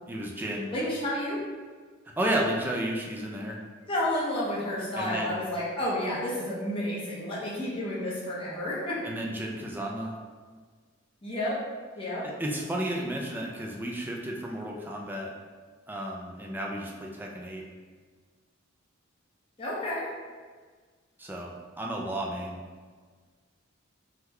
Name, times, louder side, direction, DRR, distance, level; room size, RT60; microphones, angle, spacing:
voice 1, 0.1-0.7 2.2-3.6 5.0-5.4 9.0-10.2 12.2-15.3 15.9-17.6 21.2-22.6, right 1 dB, 10° right, -1 dB, 0.3 m, -32 dB
voice 2, 0.7-1.4 3.9-9.0 11.2-11.6 12.0-12.3 19.6-20.1, left 1 dB, 25° left, -8 dB, 0.9 m, -31 dB
3.6 x 2.2 x 3.0 m, 1.5 s
head